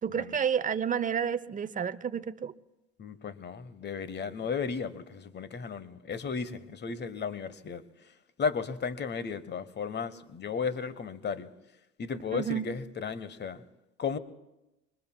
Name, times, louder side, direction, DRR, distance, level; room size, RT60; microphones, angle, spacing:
voice 1, 0.0-2.5 12.3-12.7, right 8 dB, 25° right, 14 dB, 0.7 m, -30 dB
voice 2, 3.0-7.8 8.4-11.5 12.0-13.6 14.0-14.2, left 5 dB, 30° left, 15 dB, 1.1 m, -34 dB
26.5 x 23.0 x 2.3 m, 0.97 s
hypercardioid pair, 65°, 36 cm